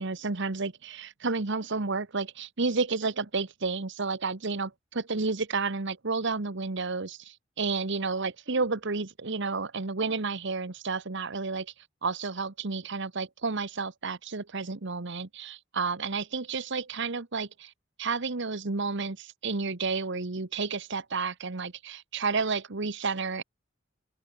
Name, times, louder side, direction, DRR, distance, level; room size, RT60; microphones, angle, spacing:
voice 1, 0.0-11.7 12.0-17.7 18.0-23.4, right 4 dB, 65° right, 1.3 m, -31 dB
open air
head